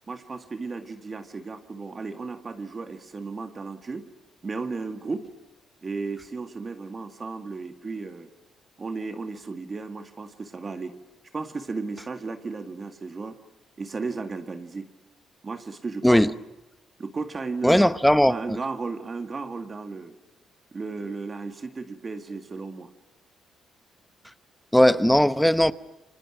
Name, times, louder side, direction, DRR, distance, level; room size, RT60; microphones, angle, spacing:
voice 1, 0.1-4.1 4.4-5.3 5.8-8.3 8.8-11.0 11.3-13.4 13.8-14.9 15.4-16.2 17.0-18.0 18.2-20.1 20.7-22.9, right 4 dB, 35° right, 2.0 m, -34 dB
voice 2, 17.6-18.6 24.7-25.7, equal, 5° left, 0.9 m, -18 dB
29.5 x 25.0 x 6.2 m
cardioid pair, 90°, 0 cm